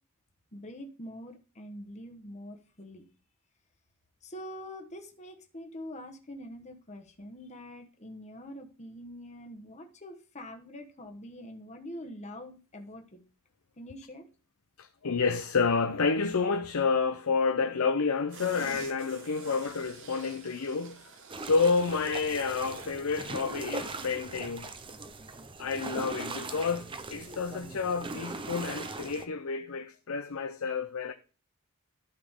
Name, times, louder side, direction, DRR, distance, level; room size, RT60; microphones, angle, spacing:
voice 1, 0.5-3.0 4.2-13.2 13.8-14.2, equal, 30° left, 1.3 m, -44 dB
voice 2, 14.8-21.0 21.4-24.7 25.6-31.1, left 4 dB, 70° left, 0.6 m, -29 dB
sound 1, 18.3-23.1 23.4-23.5, right 4 dB, 60° right, 1.5 m, -48 dB
sound 2, 21.3-29.3, right 3 dB, 25° right, 0.7 m, -40 dB
12.0 x 6.1 x 3.7 m
head